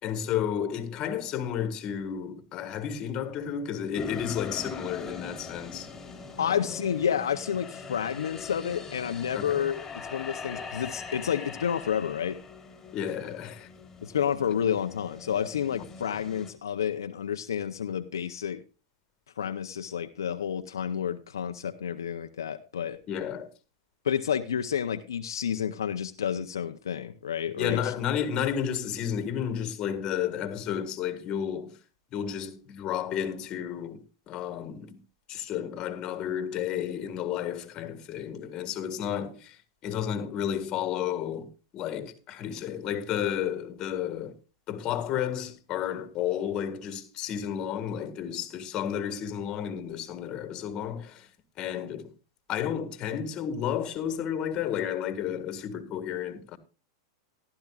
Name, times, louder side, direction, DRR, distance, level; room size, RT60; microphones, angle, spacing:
voice 1, 0.0-5.9 6.4-6.8 9.3-9.7 12.9-13.7 15.8-15.9 23.1-23.5 27.6-31.8 32.1-35.0 35.3-41.5 41.7-44.3 44.7-51.3 51.6-52.1 52.5-56.6, left 9 dB, 35° left, 1.7 m, -32 dB
sound 1, 3.9-16.5, left 4 dB, 15° left, 3.2 m, -42 dB
voice 2, 6.4-9.8 10.1-12.4 14.0-18.6 19.4-23.0 24.0-27.9, left 8 dB, 90° left, 0.7 m, -30 dB
15.0 x 12.0 x 2.4 m
hypercardioid pair, 115°, 2 cm